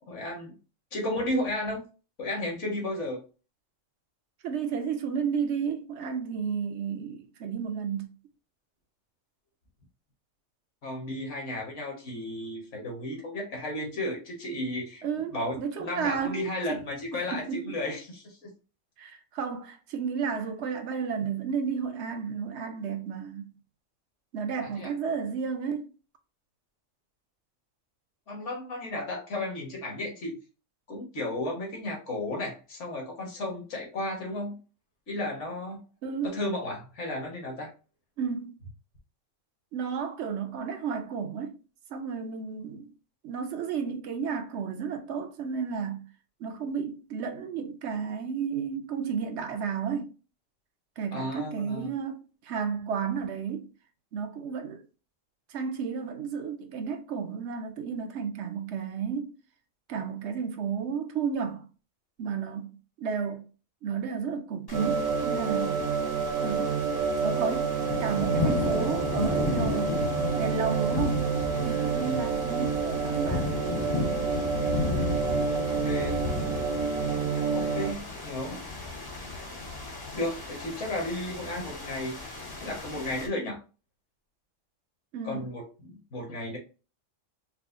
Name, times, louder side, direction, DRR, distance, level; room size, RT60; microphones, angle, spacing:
voice 1, 0.1-0.5 0.9-1.8 2.2-3.2 10.8-15.0 15.3-18.5 24.6-24.9 28.3-30.4 30.9-34.6 35.1-35.8 36.2-37.7 51.1-51.9 72.0-72.2 75.4-76.2 77.5-78.6 80.1-82.2 82.6-83.6 85.2-86.6, left 1 dB, 65° left, 1.5 m, -34 dB
voice 2, 4.4-8.1 15.0-16.4 16.7-16.8 17.1-17.7 19.0-23.5 24.3-25.9 36.0-36.4 38.2-38.6 39.7-41.5 41.9-42.9 43.2-46.1 46.4-50.1 51.0-53.7 54.1-54.8 55.5-59.3 59.9-61.7 62.2-62.7 63.0-63.5 63.8-65.8 66.4-66.7 67.2-67.7 68.0-69.9 70.3-71.3 71.6-73.5 85.1-85.5, right 6 dB, 65° right, 0.9 m, -32 dB
sound 1, 64.7-83.3, left 3 dB, 25° left, 0.5 m, -34 dB
sound 2, 64.7-77.9, right 6 dB, 90° right, 1.1 m, -29 dB
4.7 x 2.1 x 2.5 m
omnidirectional pair, 1.3 m